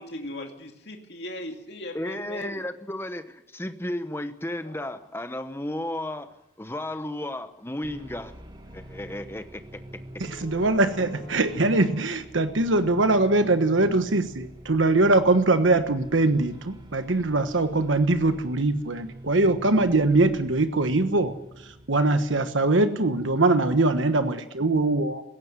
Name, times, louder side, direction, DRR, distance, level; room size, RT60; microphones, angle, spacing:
voice 1, 0.0-2.5, left 1 dB, 60° left, 2.4 m, -38 dB
voice 2, 1.9-8.4 8.7-9.8, left 1 dB, 10° left, 1.0 m, -34 dB
sound 1, 4.6-12.0, equal, 40° left, 7.6 m, -50 dB
sound 2, 7.8-23.7, right 1 dB, 25° right, 1.4 m, -46 dB
voice 3, 10.2-25.2, right 2 dB, 85° right, 1.3 m, -22 dB
17.5 x 15.5 x 9.7 m
head